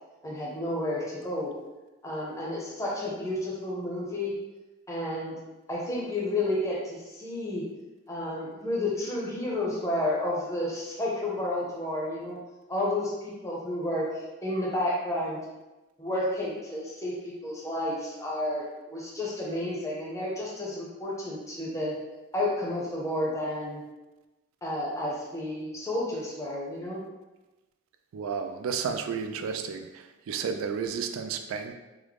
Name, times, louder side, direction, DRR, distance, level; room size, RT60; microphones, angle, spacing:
voice 1, 0.2-1.5 2.0-4.3 4.9-5.3 5.7-7.6 8.1-12.4 12.7-13.1 13.4-14.1 14.4-15.4 16.0-21.9 22.3-23.8 24.6-27.0, left 1 dB, 15° left, -4 dB, 0.5 m, -31 dB
voice 2, 28.1-31.7, right 6 dB, 80° right, 7 dB, 0.3 m, -32 dB
3.5 x 2.0 x 3.3 m, 1.1 s
head